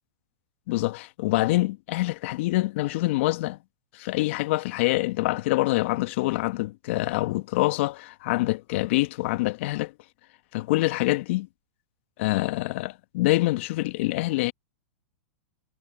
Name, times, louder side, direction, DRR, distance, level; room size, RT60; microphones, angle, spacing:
voice 1, 0.7-3.6 3.9-9.9 10.5-11.5 12.2-14.5, left 19 dB, 55° left, 1.4 m, -25 dB
hypercardioid pair, 115°, 8 cm